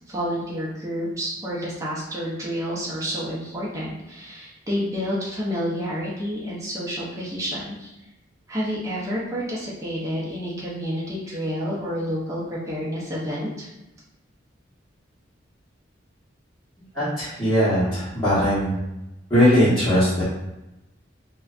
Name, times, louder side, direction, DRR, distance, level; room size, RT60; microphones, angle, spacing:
voice 1, 0.1-7.9 8.5-13.7, equal, 15° right, -7 dB, 0.5 m, -29 dB
voice 2, 16.9-18.8 19.3-20.2, equal, 15° left, -14 dB, 0.8 m, -20 dB
2.5 x 2.1 x 2.4 m, 0.96 s
head